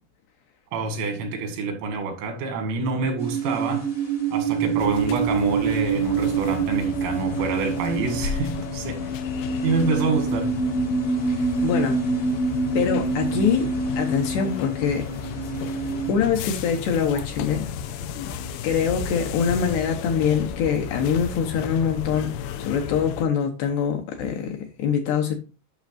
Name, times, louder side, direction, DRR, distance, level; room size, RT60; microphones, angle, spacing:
voice 1, 0.7-3.9 4.3-9.1 9.6-10.6, right 4 dB, 90° right, 4.5 m, -27 dB
sound 1, 3.2-16.1, right 5 dB, 45° left, 1.0 m, -26 dB
sound 2, 4.8-23.3, left 7 dB, 90° left, 2.3 m, -33 dB
voice 2, 11.3-12.0 12.7-13.7 14.0-15.1 16.1-17.7 18.6-22.3 22.6-25.4, left 7 dB, 75° left, 2.7 m, -24 dB
11.5 x 6.3 x 2.5 m
omnidirectional pair, 5.6 m